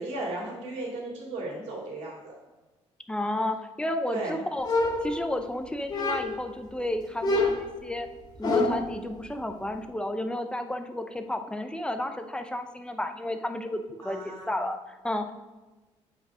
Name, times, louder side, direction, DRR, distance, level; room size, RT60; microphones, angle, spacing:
voice 1, 0.0-2.3 4.1-4.4 14.0-14.5, right 2 dB, 85° right, -2 dB, 3.0 m, -35 dB
voice 2, 3.1-4.7 5.0-8.1 8.4-15.3, left 1 dB, 10° left, 6 dB, 0.7 m, -32 dB
sound 1, 4.6-5.5 5.9-6.5 7.2-9.0, left 2 dB, 40° left, 2.3 m, -27 dB
8.3 x 5.4 x 4.9 m, 1.2 s
cardioid pair, 110°, 11 cm